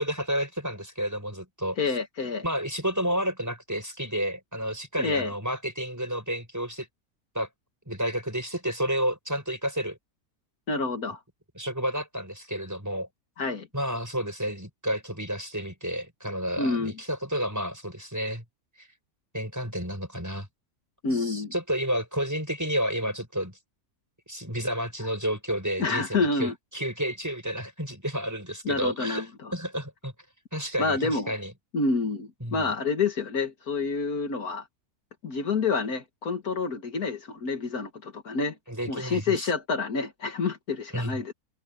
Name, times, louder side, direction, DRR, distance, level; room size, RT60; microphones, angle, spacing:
voice 1, 0.0-1.8 2.4-6.9 7.3-7.5 7.9-10.0 11.5-13.1 13.7-18.4 18.8-18.9 19.3-20.5 21.1-23.6 24.3-30.1 30.5-31.5 32.4-32.7 38.7-39.5 40.9-41.2, equal, 10° right, 6.2 m, -31 dB
voice 2, 1.8-2.4 5.0-5.3 10.7-11.2 13.4-13.7 16.6-16.9 21.0-21.5 25.8-26.5 28.7-29.5 30.8-31.3 31.7-34.7 35.2-38.6 38.9-41.3, left 4 dB, 70° left, 2.2 m, -28 dB
omnidirectional pair, 1.6 m